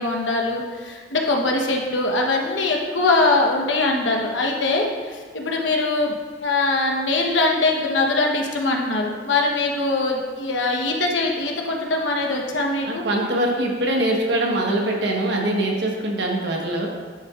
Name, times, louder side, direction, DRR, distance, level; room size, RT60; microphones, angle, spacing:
voice 1, 0.0-6.1 6.4-13.0, left 2 dB, 75° left, 1 dB, 1.0 m, -22 dB
voice 2, 12.8-16.9, right 1 dB, 60° right, 0 dB, 1.2 m, -23 dB
11.0 x 5.9 x 2.4 m, 1.5 s
head